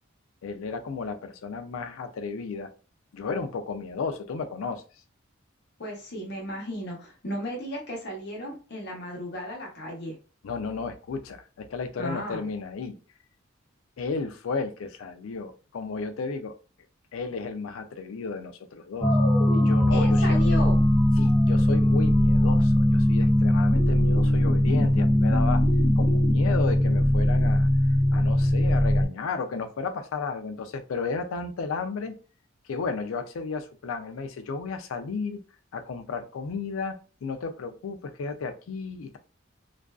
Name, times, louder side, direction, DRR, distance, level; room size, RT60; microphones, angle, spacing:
voice 1, 0.4-2.7 3.1-4.8 10.4-13.0 14.0-16.5 17.1-19.1 19.5-20.4 21.2-25.6 26.0-27.7 28.1-32.2 32.7-35.4 35.7-39.2, left 4 dB, 85° left, 8 dB, 0.4 m, -33 dB
voice 2, 5.8-10.2 12.0-12.5 19.9-20.8, equal, 55° left, -2 dB, 0.8 m, -35 dB
sound 1, 19.0-29.1, left 1 dB, 15° left, 0.4 m, -20 dB
2.4 x 2.3 x 2.3 m, 0.35 s
head